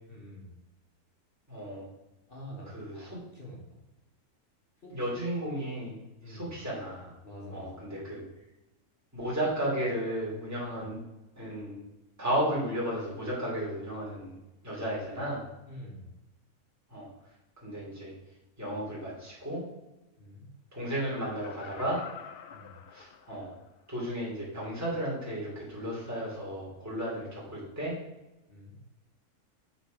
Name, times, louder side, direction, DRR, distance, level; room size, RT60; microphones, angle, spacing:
voice 1, 0.1-0.5 2.3-3.8 4.8-5.0 6.2-6.5 7.2-8.0 15.7-16.1 20.2-20.5 22.5-22.7 28.5-28.8, equal, 40° left, -2 dB, 1.4 m, -47 dB
voice 2, 1.5-1.8 2.7-3.2 4.9-6.0 6.3-7.1 7.5-8.2 9.1-11.0 11.4-11.8 12.2-14.4 14.6-15.4 16.9-17.1 17.6-18.1 18.6-19.6 20.7-22.0 22.9-23.5 23.9-28.0, right 1 dB, 10° right, -6 dB, 2.5 m, -34 dB
Laughter, 21.1-23.7 24.2-24.3, left 8 dB, 90° left, 0.5 m, -47 dB
8.1 x 4.0 x 5.0 m, 1.0 s
omnidirectional pair, 1.6 m